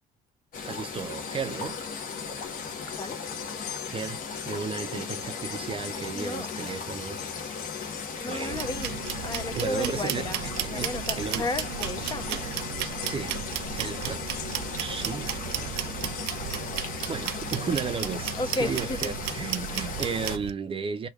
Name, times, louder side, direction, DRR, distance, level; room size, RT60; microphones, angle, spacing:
sound 1, 0.5-20.4, left 5 dB, 55° left, 1.1 m, -37 dB
voice 1, 0.6-1.8 3.9-4.2 4.5-7.3 8.3-8.6 9.5-10.3 10.7-11.4 12.0-12.5 13.0-13.4 13.7-14.3 14.8-15.8 17.1-21.1, right 5 dB, 30° right, 0.5 m, -34 dB
sound 2, 0.7-18.1 18.5-18.6 19.7-19.8, left 12 dB, 85° left, 0.6 m, -45 dB
voice 2, 6.1-6.5 8.2-12.3 18.4-19.1, left 2 dB, 25° left, 0.6 m, -33 dB
sound 3, 8.5-20.5, right 14 dB, 90° right, 0.4 m, -34 dB
3.1 x 2.3 x 3.6 m
cardioid pair, 110°, 17 cm